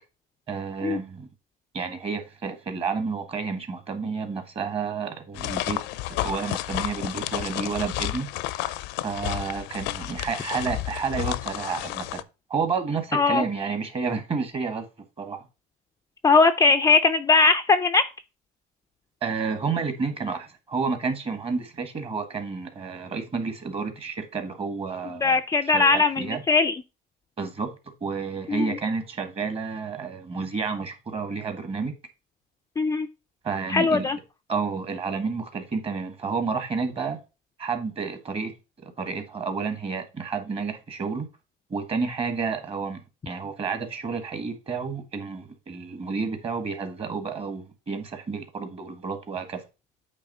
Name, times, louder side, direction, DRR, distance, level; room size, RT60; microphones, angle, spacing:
voice 1, 0.5-1.3 1.7-5.8 6.1-8.3 9.0-12.2 12.5-14.9 15.2-15.4 19.2-25.4 25.7-26.4 27.4-27.7 28.0-31.9 33.4-34.1 34.5-37.2 37.6-38.5 38.8-41.3 41.7-43.0 43.2-49.6, right 5 dB, 30° right, 1.5 m, -30 dB
sound 1, 5.4-12.2, left 16 dB, 75° left, 0.6 m, -31 dB
voice 2, 13.1-13.4 16.2-18.0 25.2-26.8 28.5-28.7 32.8-33.1 33.7-34.2, left 4 dB, 20° left, 0.4 m, -20 dB
8.4 x 3.1 x 5.3 m
cardioid pair, 115°, 19 cm